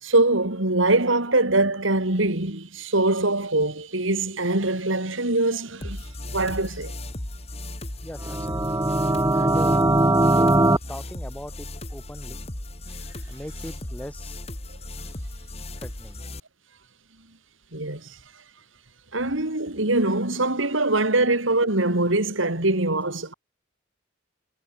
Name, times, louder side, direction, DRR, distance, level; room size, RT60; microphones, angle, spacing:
voice 1, 0.0-6.0 6.3-7.0 17.7-18.2 19.1-23.3, right 2 dB, 75° right, 3.8 m, -23 dB
sound 1, 5.8-16.4, left 1 dB, 30° left, 2.5 m, -36 dB
voice 2, 8.0-8.9 9.3-9.8 10.4-12.4 13.3-14.4 15.8-16.2, equal, 5° left, 4.8 m, -40 dB
sound 2, 8.2-10.8, right 2 dB, 15° right, 1.0 m, -20 dB
head